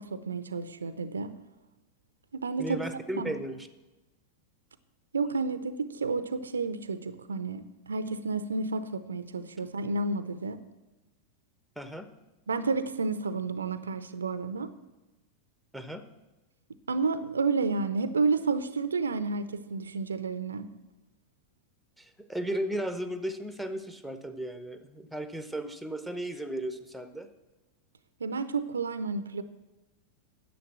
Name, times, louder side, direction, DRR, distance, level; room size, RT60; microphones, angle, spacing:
voice 1, 0.0-1.3 2.3-2.8 3.2-3.3 5.1-10.6 12.5-14.7 16.9-20.7 28.2-29.4, right 4 dB, 70° right, 13 dB, 0.6 m, -31 dB
voice 2, 2.6-3.7 11.8-12.1 15.7-16.0 22.0-27.3, right 1 dB, ahead, 9 dB, 0.9 m, -35 dB
10.0 x 7.1 x 7.6 m, 1.1 s
figure-of-eight pair, 90°, 0 cm